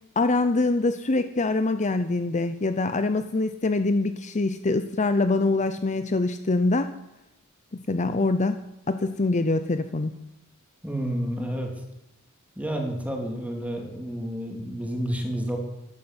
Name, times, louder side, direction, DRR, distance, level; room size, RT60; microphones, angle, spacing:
voice 1, 0.2-6.9 7.9-8.6 8.9-10.1, left 2 dB, 35° left, 10 dB, 0.7 m, -24 dB
voice 2, 10.8-11.7 12.6-15.6, equal, 5° right, 2 dB, 3.3 m, -30 dB
14.5 x 12.5 x 7.9 m, 0.87 s
head